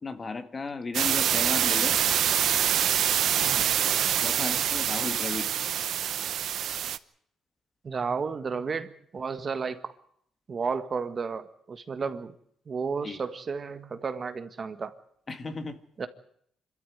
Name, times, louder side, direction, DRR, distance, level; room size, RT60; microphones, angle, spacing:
voice 1, 0.0-2.0 3.3-5.5 13.0-13.2 15.3-15.8, left 4 dB, 35° left, 8 dB, 2.0 m, -35 dB
sound 1, 0.9-7.0, right 10 dB, 70° right, 0.8 m, -25 dB
voice 2, 7.8-9.9 10.5-12.3 12.7-14.9 16.0-16.1, right 5 dB, 40° right, 9 dB, 1.6 m, -33 dB
25.5 x 13.5 x 9.6 m, 0.70 s
cardioid pair, 90°, 0 cm